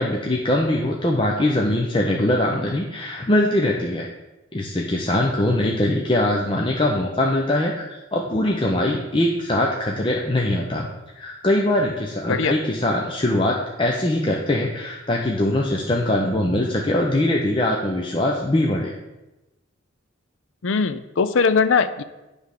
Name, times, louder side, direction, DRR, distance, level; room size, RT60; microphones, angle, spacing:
voice 1, 0.0-4.1 4.5-10.9 11.2-18.9, left 1 dB, 25° left, -1 dB, 0.6 m, -22 dB
voice 2, 20.6-22.0, left 5 dB, 70° left, 12 dB, 0.5 m, -20 dB
9.4 x 3.5 x 6.4 m, 1.0 s
head